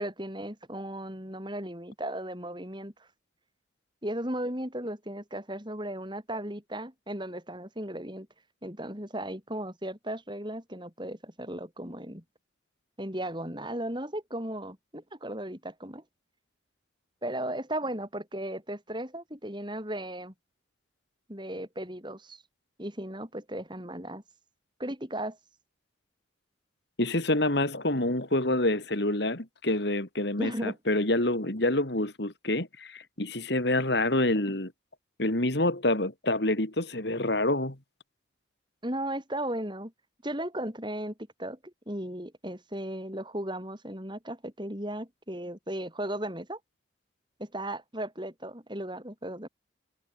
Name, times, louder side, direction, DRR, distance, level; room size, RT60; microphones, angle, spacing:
voice 1, 0.0-3.1 4.0-8.3 8.6-12.2 13.0-16.0 17.2-20.3 21.3-22.4 22.8-24.2 24.8-25.4 30.4-30.8 38.8-39.9 40.2-41.1 41.4-46.6 47.4-49.5, right 1 dB, 25° right, 6.7 m, -36 dB
voice 2, 27.0-34.7 35.2-37.8, left 1 dB, 60° left, 2.9 m, -27 dB
head